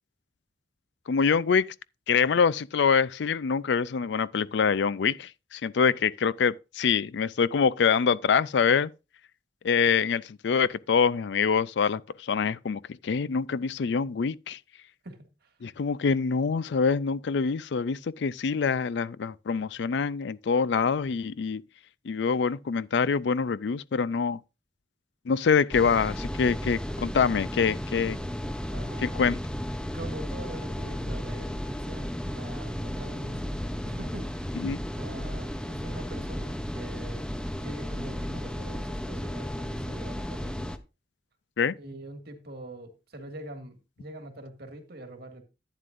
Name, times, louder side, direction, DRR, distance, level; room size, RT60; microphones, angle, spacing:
voice 1, 1.1-1.6 2.1-8.9 9.6-14.6 15.6-21.6 22.0-24.4 25.3-28.2 29.0-29.4 34.6-34.8 41.6-41.7, left 6 dB, 70° left, 0.4 m, -25 dB
voice 2, 15.0-15.5 28.7-29.2 29.8-34.6 34.9-37.2 37.6-40.7 41.8-45.4, right 1 dB, 60° right, 2.0 m, -44 dB
sound 1, 25.7-40.8, equal, 5° left, 0.6 m, -34 dB
11.0 x 9.3 x 2.6 m
head